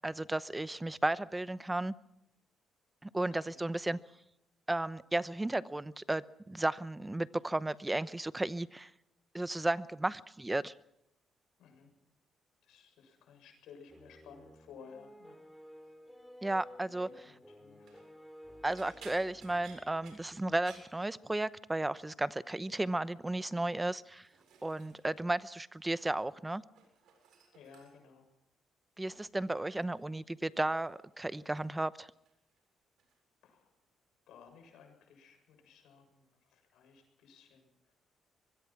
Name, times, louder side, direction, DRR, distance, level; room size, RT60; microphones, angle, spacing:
voice 1, 0.0-1.9 3.0-4.0 4.7-8.9 9.3-10.7 16.4-17.3 18.6-24.3 24.6-26.6 29.0-32.1, right 2 dB, 15° right, 15 dB, 0.8 m, -34 dB
voice 2, 3.1-4.0 11.6-11.9 12.6-15.4 17.0-18.0 27.5-28.3 33.4-33.7 34.3-36.2 36.5-37.7, left 6 dB, 80° left, 5 dB, 7.3 m, -56 dB
sound 1, 13.9-20.8, equal, 5° left, 2.9 m, -55 dB
sound 2, 17.7-18.1 18.6-21.7 21.9-22.3 22.6-23.2 23.8-25.3 25.5-26.4 26.6-28.2 29.1-29.3 29.8-31.8 32.1-32.6 33.0-33.2 34.5-34.6, right 6 dB, 75° right, 7.5 m, -60 dB
24.5 x 21.5 x 6.0 m, 0.83 s
cardioid pair, 90°, 0 cm